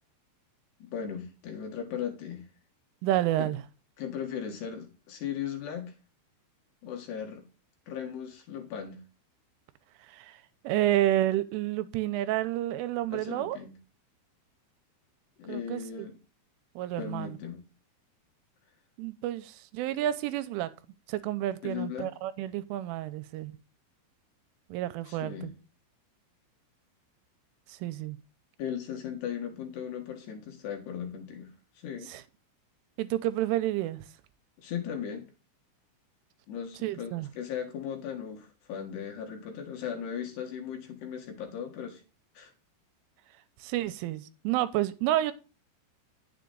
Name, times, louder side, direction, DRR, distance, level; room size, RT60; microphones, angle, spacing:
voice 1, 0.8-2.5 3.4-3.5 4.0-5.9 6.8-7.4 7.9-9.0 13.1-13.7 15.4-16.2 17.0-17.6 21.6-22.1 25.1-25.5 28.6-32.1 34.6-35.3 36.5-42.0 42.3-42.5, left 8 dB, 65° left, 3.2 m, -37 dB
voice 2, 3.0-3.6 10.1-13.6 15.5-16.1 16.8-17.4 19.0-20.7 21.1-23.5 24.7-25.5 27.7-28.2 32.0-32.2 33.0-34.0 36.8-37.3 43.6-45.3, right 13 dB, 85° right, 3.2 m, -30 dB
10.5 x 7.5 x 3.9 m
omnidirectional pair, 5.7 m